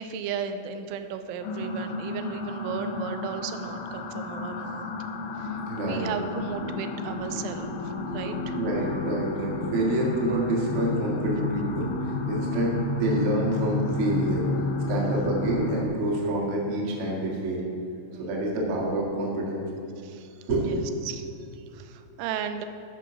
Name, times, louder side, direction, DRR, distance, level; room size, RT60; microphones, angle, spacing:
voice 1, 0.0-4.9 5.4-8.6 18.1-18.5 20.0-20.3 20.6-22.7, right 7 dB, 90° right, 8 dB, 3.1 m, -36 dB
sound 1, 1.4-15.9, left 3 dB, 85° left, 3.2 m, -31 dB
voice 2, 5.7-6.1 8.5-14.5 14.9-17.6 18.2-19.6 20.5-20.8, right 1 dB, 70° right, -3 dB, 1.3 m, -27 dB
12.0 x 5.4 x 5.9 m, 2.6 s
omnidirectional pair, 5.4 m